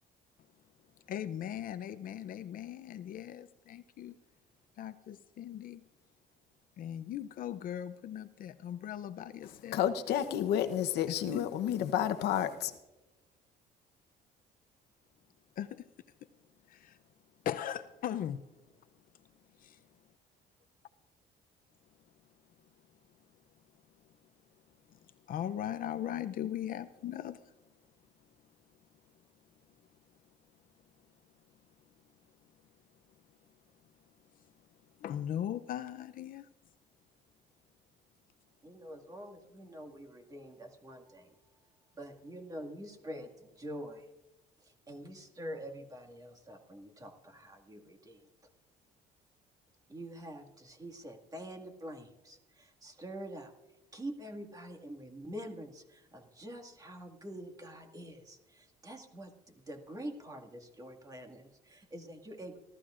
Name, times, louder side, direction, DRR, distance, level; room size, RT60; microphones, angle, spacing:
voice 1, 1.0-4.2 4.8-5.8 6.8-9.8 11.1-11.8 15.6-15.9 16.7-17.0 17.4-19.9 24.0-24.1 24.9-27.7 29.8-29.9 31.8-31.9 32.6-32.7 34.3-34.5 35.0-36.5, left 10 dB, 55° left, 12 dB, 0.6 m, -40 dB
voice 2, 9.7-12.8, left 10 dB, 80° left, 10 dB, 0.9 m, -30 dB
voice 3, 38.6-41.4 41.9-44.1 44.6-48.3 49.9-53.5 53.9-62.6, right 1 dB, 20° right, 3 dB, 2.0 m, -46 dB
28.0 x 14.0 x 2.5 m, 1.1 s
cardioid pair, 110°, 17 cm